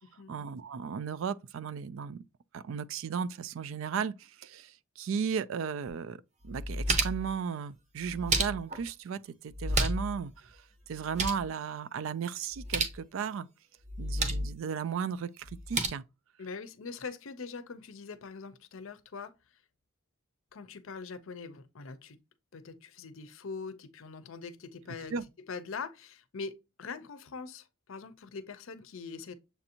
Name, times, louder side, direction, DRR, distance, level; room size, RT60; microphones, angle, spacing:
voice 1, 0.3-2.2 2.5-6.2 6.4-10.6 10.9-13.5 14.0-16.0 25.1-25.2, right 6 dB, 65° right, 0.3 m, -35 dB
sound 1, 5.9-6.0 6.4-7.3 8.0-8.9 9.5-10.2 10.4-10.5 10.9-11.5 12.5-13.0 13.9-14.5 15.4-15.9, right 2 dB, 30° right, 0.7 m, -31 dB
voice 2, 16.4-19.3 20.5-22.2 22.5-25.1 25.5-29.3, left 5 dB, 65° left, 0.5 m, -42 dB
7.0 x 2.6 x 2.7 m
head